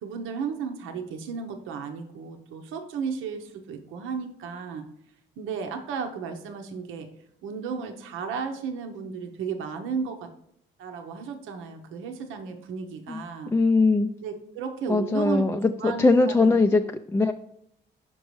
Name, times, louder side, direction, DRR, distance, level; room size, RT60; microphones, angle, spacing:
voice 1, 0.0-4.9 5.4-7.1 7.4-10.3 10.8-13.5 14.2-15.4 15.8-16.8, right 6 dB, 90° right, 5 dB, 0.8 m, -34 dB
voice 2, 13.5-14.1 14.9-16.8 17.1-17.3, left 3 dB, 10° left, 6 dB, 0.3 m, -21 dB
5.9 x 5.3 x 3.1 m, 0.75 s
cardioid pair, 90°, 20 cm